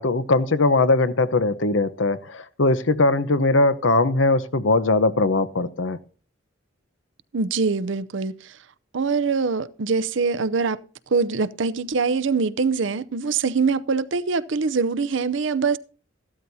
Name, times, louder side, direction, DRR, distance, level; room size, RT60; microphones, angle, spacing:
voice 1, 0.0-6.0, left 2 dB, 70° left, 0.9 m, -20 dB
voice 2, 7.3-8.6 8.9-10.8 11.1-15.8, right 4 dB, 65° right, 0.6 m, -23 dB
15.0 x 12.5 x 2.7 m
head